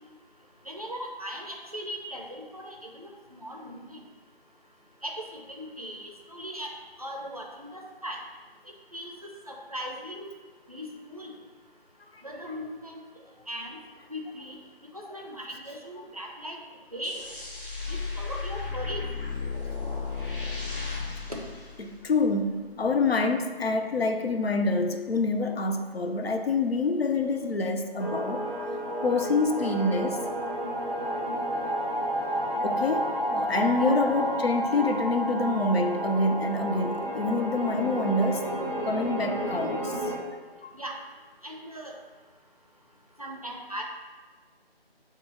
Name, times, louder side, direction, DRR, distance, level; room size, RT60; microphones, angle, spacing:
voice 1, 0.6-4.0 5.0-6.7 7.0-8.2 8.9-9.1 9.5-10.3 10.7-11.3 12.2-13.0 13.5-13.8 14.1-14.6 14.9-16.6 16.9-17.2 17.9-19.1 21.3-21.4 33.7-34.0 40.7-41.0 41.4-41.9 43.2-43.8, equal, 40° right, 0 dB, 0.4 m, -38 dB
sound 1, 17.0-22.4, left 4 dB, 60° left, 0.9 m, -34 dB
voice 2, 21.8-28.4 29.0-30.2 32.6-33.1 33.3-38.5 38.9-40.1 40.6-40.7, left 3 dB, 80° left, 6 dB, 0.5 m, -26 dB
sound 2, 28.0-40.2, equal, 35° left, 0.7 m, -31 dB
6.8 x 2.3 x 2.8 m, 1.4 s
figure-of-eight pair, 160°, 30 cm